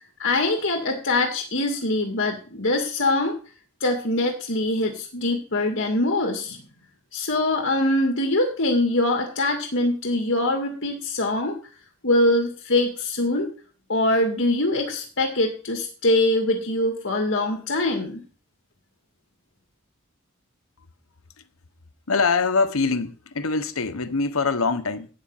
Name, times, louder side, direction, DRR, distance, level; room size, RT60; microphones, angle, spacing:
voice 1, 0.2-3.4 3.8-6.6 7.1-11.6 12.0-13.5 13.9-18.2, left 2 dB, 60° left, 2.3 m, -23 dB
voice 2, 22.1-25.1, left 4 dB, 85° left, 1.2 m, -23 dB
13.0 x 5.3 x 9.0 m
head